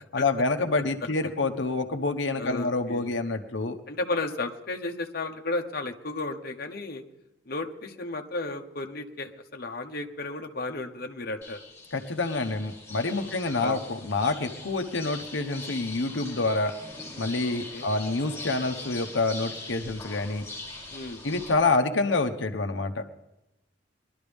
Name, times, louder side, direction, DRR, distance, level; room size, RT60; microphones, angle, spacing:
voice 1, 0.1-3.8 11.9-16.7 17.2-20.4 21.2-23.0, left 3 dB, 85° left, 5 dB, 1.0 m, -27 dB
voice 2, 2.4-3.1 3.9-7.0 7.5-11.6 13.2-13.3 13.6-13.8 17.4-17.9 20.9-21.2, left 2 dB, 55° left, 3 dB, 1.2 m, -33 dB
sound 1, 11.4-21.5, left 3 dB, 15° left, 3.3 m, -42 dB
21.5 x 12.0 x 3.5 m, 0.94 s
head